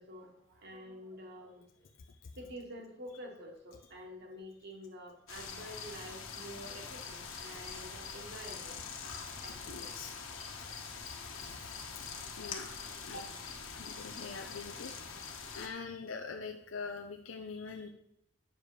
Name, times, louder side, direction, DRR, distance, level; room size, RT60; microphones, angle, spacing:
voice 1, 0.0-1.7 2.4-8.8 9.4-9.9, equal, 55° right, 2 dB, 1.8 m, -48 dB
voice 2, 2.0-2.4 7.5-7.6 9.6-10.8 12.4-13.3 13.7-14.9 15.5-17.9, left 4 dB, 70° left, 4 dB, 0.7 m, -44 dB
sound 1, 5.3-15.7, left 5 dB, 85° left, 1.5 m, -44 dB
8.8 x 6.6 x 4.9 m, 0.78 s
head